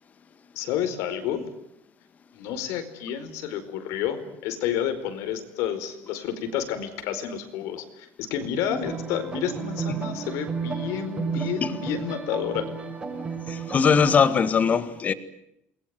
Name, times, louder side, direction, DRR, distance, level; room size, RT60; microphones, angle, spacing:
voice 1, 0.5-1.5 2.3-12.7, left 9 dB, 75° left, 4.7 m, -30 dB
sound 1, 8.7-14.1, right 5 dB, 20° right, 7.1 m, -33 dB
voice 2, 11.3-11.7 13.5-15.1, left 6 dB, 30° left, 2.0 m, -21 dB
28.5 x 21.0 x 9.6 m
cardioid pair, 140°, 5 cm